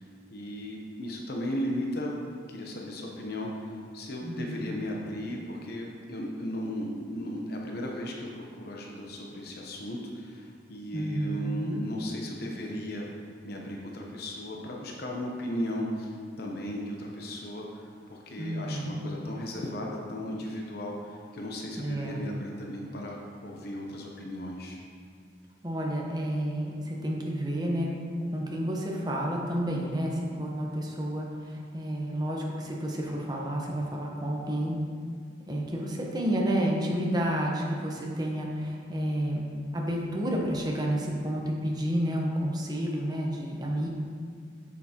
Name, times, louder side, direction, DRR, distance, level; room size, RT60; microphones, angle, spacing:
voice 1, 0.0-2.2 2.5-13.1 13.4-24.8, equal, 60° left, -1 dB, 0.9 m, -36 dB
voice 2, 4.2-4.5 10.9-11.9 18.4-19.2 21.8-22.2 25.6-27.9 28.3-34.8 35.4-39.5 39.7-43.9, equal, 25° right, -2 dB, 1.0 m, -30 dB
8.1 x 6.9 x 2.9 m, 2.2 s
head